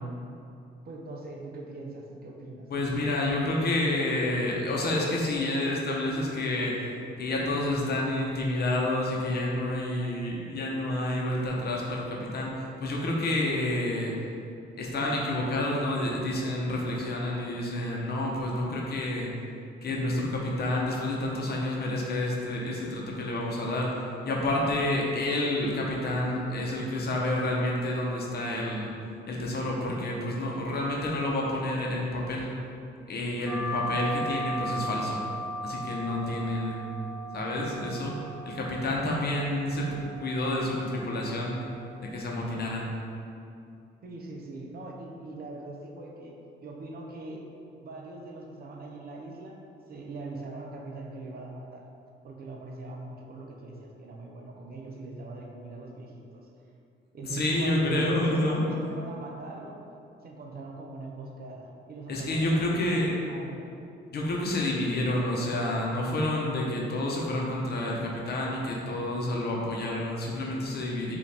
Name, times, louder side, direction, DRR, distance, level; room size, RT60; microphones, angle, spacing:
voice 1, 0.8-2.7 44.0-46.4 46.6-47.5 47.8-49.6 49.9-51.8 52.2-56.5 57.1-59.8 60.2-63.7, right 2 dB, 50° right, 0 dB, 0.6 m, -41 dB
voice 2, 2.7-6.9 7.2-14.1 14.8-19.3 19.8-28.9 29.3-32.5 33.1-35.2 35.6-36.9 37.3-38.2 38.5-41.6 42.0-42.9 57.2-58.6 62.1-63.1 64.1-71.2, left 1 dB, 55° left, -2 dB, 0.8 m, -29 dB
sound 1, 33.5-42.5, equal, 5° left, 0.8 m, -37 dB
4.8 x 2.5 x 3.3 m, 2.6 s
cardioid pair, 90°, 20 cm